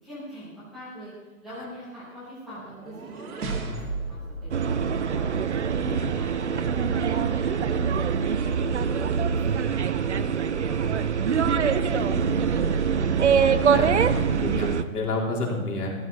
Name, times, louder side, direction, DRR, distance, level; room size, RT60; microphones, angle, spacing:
voice 1, 0.0-1.1 1.4-3.7 4.1-5.3 5.7-9.0 9.3-11.5 11.8-13.2, equal, ahead, -15 dB, 1.0 m, -43 dB
sound 1, 2.6-5.7, right 3 dB, 75° right, 2.4 m, -35 dB
sound 2, 4.5-14.8, right 6 dB, 50° right, 0.6 m, -24 dB
voice 2, 13.7-15.9, left 2 dB, 90° left, -1 dB, 4.0 m, -29 dB
14.5 x 13.0 x 4.1 m, 1.2 s
hypercardioid pair, 175°, 45 cm